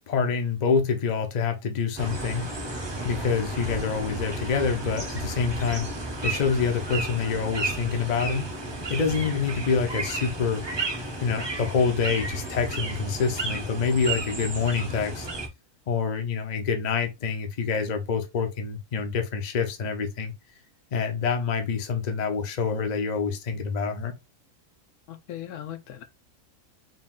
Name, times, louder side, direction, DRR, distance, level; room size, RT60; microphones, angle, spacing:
voice 1, 0.1-2.5 3.0-5.9 6.2-8.5 8.9-10.6 11.2-15.3 15.9-20.3 20.9-24.1, left 5 dB, 45° left, 0.5 m, -26 dB
sound 1, 2.0-15.5, right 2 dB, 30° right, 0.5 m, -33 dB
voice 2, 25.1-26.0, left 11 dB, 75° left, 1.1 m, -38 dB
3.9 x 2.4 x 3.6 m
omnidirectional pair, 1.6 m